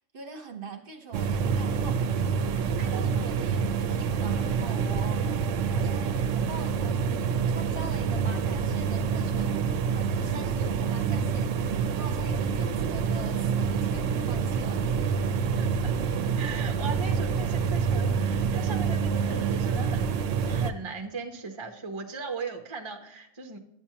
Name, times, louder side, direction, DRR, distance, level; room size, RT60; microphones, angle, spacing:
voice 1, 0.0-2.0 2.5-5.3 5.7-7.0 7.5-14.9, right 4 dB, 45° right, 5 dB, 1.1 m, -43 dB
sound 1, 1.1-20.7, right 6 dB, 75° right, 0.9 m, -27 dB
voice 2, 16.4-20.1 20.4-23.6, right 4 dB, 25° right, 4 dB, 0.7 m, -38 dB
11.0 x 8.6 x 2.8 m, 0.81 s
omnidirectional pair, 1.3 m